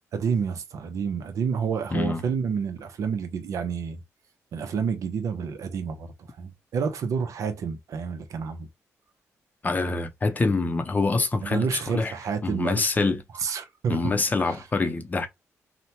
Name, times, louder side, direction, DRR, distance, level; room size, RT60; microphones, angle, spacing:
voice 1, 0.1-4.0 4.5-8.7 11.4-12.9 13.4-14.1 14.4-14.6, right 6 dB, 75° right, 0.6 m, -29 dB
voice 2, 1.9-2.2 9.6-12.1 12.4-13.2 13.9-15.3, left 3 dB, 30° left, 0.6 m, -25 dB
2.9 x 2.1 x 2.7 m
cardioid pair, 90°, 6 cm